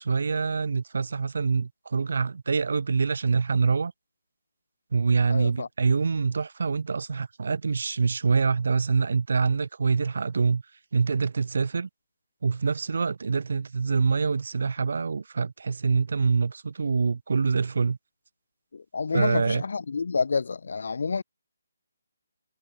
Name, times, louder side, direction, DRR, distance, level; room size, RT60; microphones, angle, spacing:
voice 1, 0.0-3.9 4.9-10.6 10.9-11.9 12.4-18.0 19.1-19.6, right 4 dB, 55° right, 0.7 m, -25 dB
voice 2, 5.3-5.7 18.7-21.2, left 4 dB, 55° left, 1.4 m, -28 dB
hypercardioid pair, 180°, 0 cm